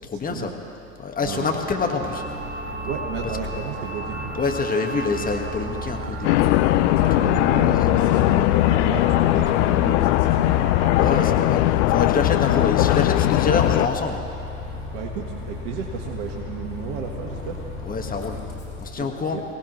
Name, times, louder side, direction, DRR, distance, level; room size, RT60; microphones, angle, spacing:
voice 1, 0.0-0.5 1.0-2.2 4.4-6.4 7.6-8.0 11.0-11.6 11.9-14.2 17.8-18.4 18.8-19.4, left 4 dB, 20° left, 3 dB, 1.6 m, -26 dB
voice 2, 1.2-1.7 2.8-4.3 7.2-10.6 14.9-17.6 19.0-19.4, right 7 dB, 60° right, 0 dB, 1.7 m, -33 dB
sound 1, 1.3-11.4, right 4 dB, 25° right, 1.7 m, -36 dB
Bus, 2.0-18.9, left 3 dB, 80° left, 3.7 m, -35 dB
sound 2, 6.2-13.9, left 16 dB, 55° left, 0.5 m, -19 dB
23.0 x 17.5 x 3.2 m, 2.7 s
hypercardioid pair, 90°, 43 cm